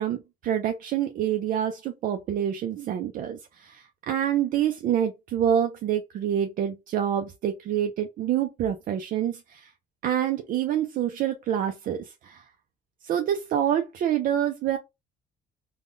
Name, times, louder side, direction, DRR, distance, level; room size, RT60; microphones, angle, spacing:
voice 1, 0.0-9.7 10.0-12.5 13.0-14.8, right 10 dB, 55° right, 0.4 m, -27 dB
3.5 x 2.2 x 2.5 m
cardioid pair, 110°, 17 cm